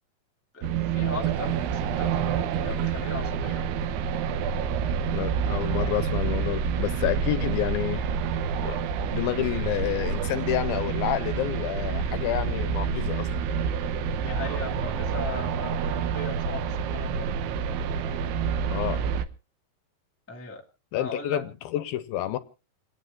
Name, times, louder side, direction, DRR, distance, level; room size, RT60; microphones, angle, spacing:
voice 1, 0.5-3.7 14.2-17.3 20.3-20.6 21.0-21.4, left 3 dB, 15° left, 0 dB, 0.4 m, -37 dB
sound 1, 0.6-19.3, right 6 dB, 85° right, 3.0 m, -28 dB
voice 2, 5.1-8.0 8.6-13.3 18.7-19.0 20.9-22.4, left 13 dB, 75° left, 12 dB, 2.4 m, -29 dB
28.5 x 9.8 x 2.5 m, 0.35 s
omnidirectional pair, 4.6 m